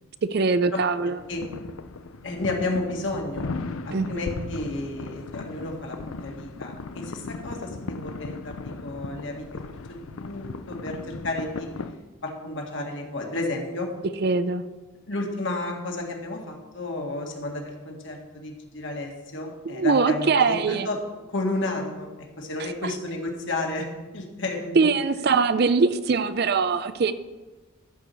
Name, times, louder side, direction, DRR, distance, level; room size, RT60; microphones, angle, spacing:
voice 1, 0.2-1.2 3.9-4.3 14.2-14.6 19.6-20.9 22.8-22.9 24.8-27.1, right 4 dB, 50° right, 12 dB, 0.4 m, -22 dB
sound 1, 1.2-11.9, left 3 dB, 85° left, 0.6 m, -37 dB
voice 2, 2.2-3.5 3.9-9.5 9.9-11.7 12.2-13.9 15.1-21.0 21.3-23.9 24.1-24.7, left 2 dB, 60° left, 1 dB, 1.9 m, -32 dB
14.0 x 4.8 x 6.9 m, 1.2 s
head